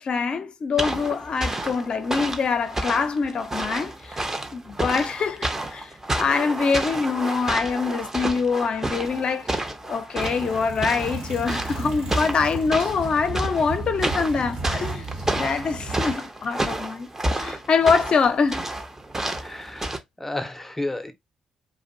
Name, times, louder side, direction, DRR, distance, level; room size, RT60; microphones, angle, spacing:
voice 1, 0.0-4.2 4.5-15.0 15.4-17.1 17.4-18.6, left 5 dB, 50° left, 0.5 m, -24 dB
sound 1, 0.8-20.0, right 1 dB, 20° right, 0.7 m, -30 dB
sound 2, 10.2-16.1, right 3 dB, 70° right, 1.0 m, -34 dB
voice 2, 19.4-21.1, left 2 dB, 15° left, 0.6 m, -32 dB
2.5 x 2.2 x 2.6 m
hypercardioid pair, 50°, 2 cm